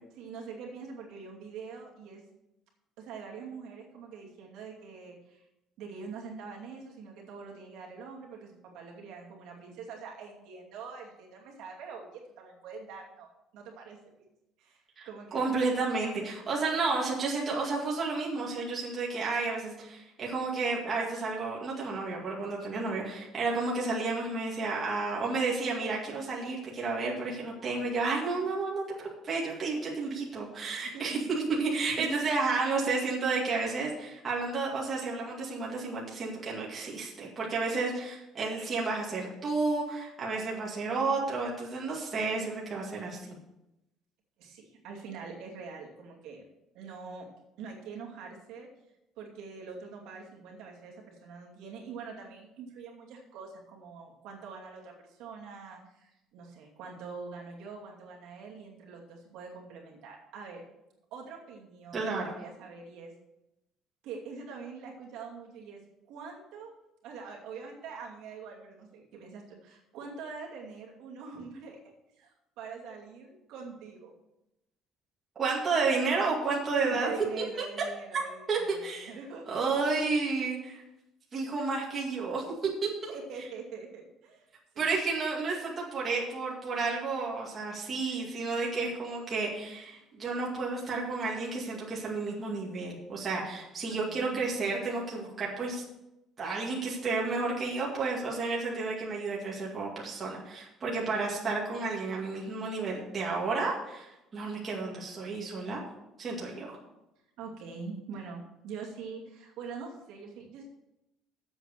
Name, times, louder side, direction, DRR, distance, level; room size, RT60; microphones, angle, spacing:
voice 1, 0.1-2.2 3.0-5.5 5.8-14.0 14.6-15.5 30.8-31.3 32.0-32.1 44.4-46.4 46.7-47.3 47.6-48.7 49.2-60.6 61.1-63.1 64.0-65.8 66.1-66.7 67.0-71.8 72.1-74.1 76.7-79.8 83.1-84.5 84.7-84.9 87.7-87.8 94.3-94.4 101.0-101.1 107.4-110.7, right 5 dB, 65° right, -2 dB, 2.5 m, -44 dB
voice 2, 15.0-28.8 29.2-43.4 61.9-62.3 75.4-77.4 78.1-78.2 78.5-79.1 79.5-80.8 81.3-83.1 84.8-95.8 96.4-105.8 106.2-106.8, right 3 dB, 25° right, -4 dB, 2.2 m, -31 dB
7.9 x 7.9 x 6.5 m, 0.90 s
cardioid pair, 170°, 0 cm